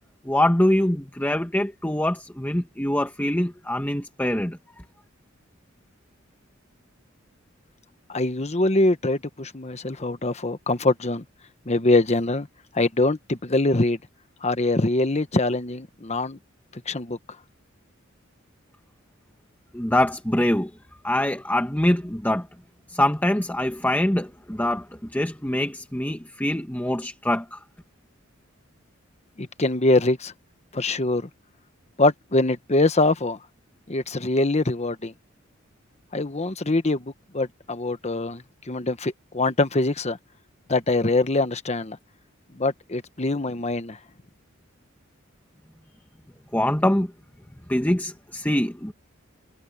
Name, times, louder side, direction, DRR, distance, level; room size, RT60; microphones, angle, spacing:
voice 1, 0.2-4.8 19.7-20.7 21.0-22.5 22.9-27.6 46.5-47.1 47.7-48.9, left 1 dB, 10° left, 1.5 m, -24 dB
voice 2, 8.1-11.2 11.7-12.5 12.7-14.0 14.4-16.4 16.9-17.2 29.4-30.3 30.7-31.3 32.0-33.4 33.9-35.1 36.1-40.2 40.7-42.0 42.5-44.0, left 2 dB, 35° left, 1.1 m, -23 dB
head